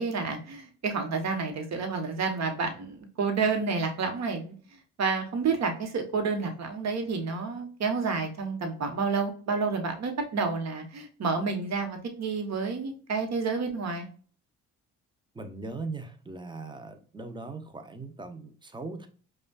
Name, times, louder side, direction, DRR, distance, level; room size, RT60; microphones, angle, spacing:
voice 1, 0.0-4.5 5.0-14.1, right 4 dB, 55° right, 5 dB, 1.1 m, -29 dB
voice 2, 15.3-19.1, right 3 dB, 15° right, 7 dB, 0.7 m, -39 dB
5.1 x 2.4 x 2.3 m, 0.41 s
supercardioid pair, 60°, 33 cm